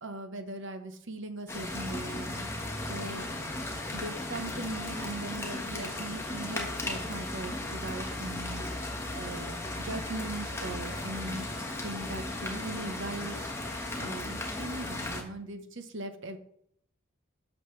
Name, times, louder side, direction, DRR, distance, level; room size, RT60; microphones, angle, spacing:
voice 1, 0.0-2.5 2.9-3.3 3.9-8.7 9.1-11.5 11.8-13.4 14.0-16.4, right 2 dB, 65° right, 7 dB, 1.0 m, -39 dB
sound 1, 1.5-15.2, left 2 dB, 15° left, 1.3 m, -36 dB
11.5 x 6.6 x 3.3 m, 0.68 s
head